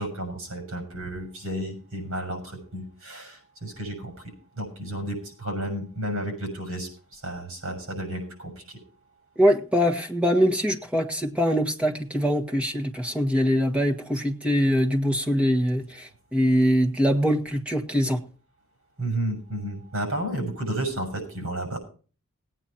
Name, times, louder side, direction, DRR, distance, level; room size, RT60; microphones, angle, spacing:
voice 1, 0.0-8.8 19.0-21.8, right 1 dB, 65° right, 5 dB, 6.5 m, -32 dB
voice 2, 9.4-18.2, equal, 5° right, 2 dB, 1.6 m, -23 dB
18.0 x 9.2 x 4.3 m, 0.38 s
head